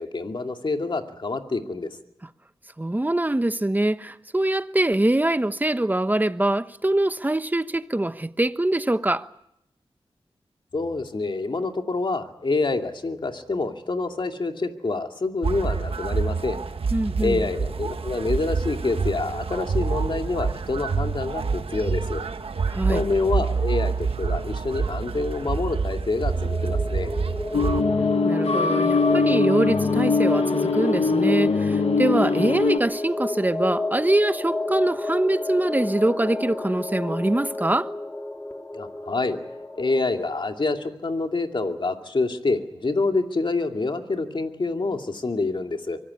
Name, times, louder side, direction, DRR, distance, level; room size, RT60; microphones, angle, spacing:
voice 1, 0.0-2.0 10.7-16.6 17.2-22.2 22.9-27.1 38.7-39.4 39.8-46.0, left 3 dB, 50° left, 2.3 m, -27 dB
voice 2, 2.8-9.3 16.9-17.5 22.7-23.0 28.2-37.9, right 1 dB, 15° right, 1.1 m, -23 dB
sound 1, 15.4-27.8, right 4 dB, 70° right, 1.4 m, -27 dB
sound 2, 26.2-40.5, left 2 dB, 15° left, 3.3 m, -31 dB
sound 3, 27.5-32.8, left 4 dB, 85° left, 1.3 m, -22 dB
24.5 x 18.0 x 9.7 m
wide cardioid pair, 70°, 10 cm